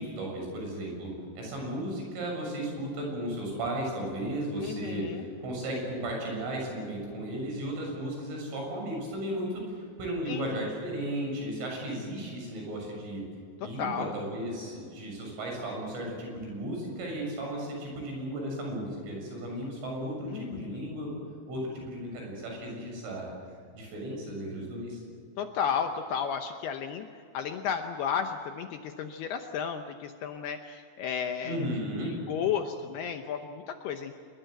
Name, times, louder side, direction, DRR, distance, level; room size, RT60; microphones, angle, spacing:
voice 1, 0.0-13.2 13.6-21.2 21.5-23.3 23.7-25.0 31.4-32.1, right 1 dB, 80° right, 0 dB, 9.7 m, -35 dB
voice 2, 4.6-5.3 10.3-10.7 13.6-14.2 20.3-20.8 25.4-31.7 32.0-34.1, left 7 dB, 75° left, 6 dB, 2.4 m, -33 dB
25.5 x 22.0 x 7.9 m, 2.3 s
omnidirectional pair, 5.6 m